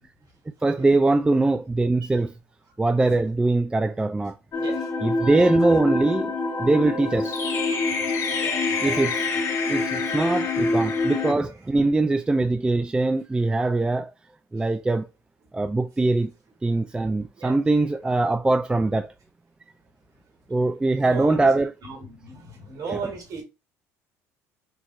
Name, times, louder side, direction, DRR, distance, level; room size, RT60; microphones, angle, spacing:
voice 1, 0.6-2.3 2.8-4.4 5.0-7.4 8.8-9.2 9.7-14.1 14.5-15.1 15.5-16.3 16.6-19.1 20.5-21.7 22.9-23.0, right 2 dB, 10° right, 0.3 m, -22 dB
sound 1, 4.5-11.3, left 3 dB, 45° left, 1.3 m, -26 dB
voice 2, 4.5-4.9 7.8-9.1 9.7-10.1 17.4-17.6 18.5-18.6 20.6-20.7 21.0-21.5 21.8-23.4, right 5 dB, 55° right, 2.4 m, -37 dB
4.5 x 2.8 x 3.2 m
hypercardioid pair, 65°, 8 cm